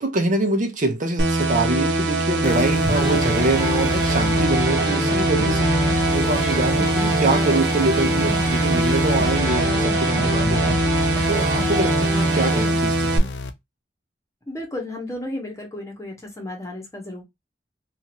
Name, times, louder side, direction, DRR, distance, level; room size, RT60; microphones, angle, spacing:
voice 1, 0.0-13.3, right 2 dB, 50° right, 0.7 m, -25 dB
sound 1, 1.2-13.2, right 2 dB, 85° right, 0.6 m, -22 dB
sound 2, 2.4-13.5, left 3 dB, 75° left, 0.4 m, -31 dB
sound 3, 2.9-12.7, right 1 dB, 20° right, 1.0 m, -28 dB
voice 2, 14.5-17.2, left 1 dB, 20° left, 1.1 m, -33 dB
2.8 x 2.4 x 2.9 m
head